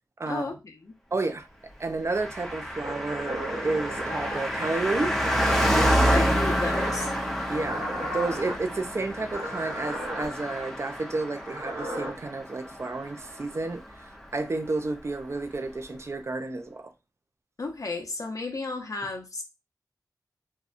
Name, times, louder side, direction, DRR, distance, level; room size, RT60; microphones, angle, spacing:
voice 1, 0.3-0.9 6.0-7.1 17.6-19.4, left 3 dB, 50° left, 0.7 m, -33 dB
voice 2, 1.1-1.5 1.8-5.2 7.5-13.8 14.3-16.9, right 3 dB, 40° right, 0.4 m, -31 dB
Car passing by, 2.1-13.9 14.2-14.3, equal, 5° left, 0.7 m, -28 dB
sound 1, 2.8-4.5 5.2-6.1 6.7-7.1 7.6-8.6 9.3-10.3 11.3-12.1, right 1 dB, 60° right, 1.1 m, -35 dB
2.8 x 2.2 x 2.5 m
wide cardioid pair, 65°, 7 cm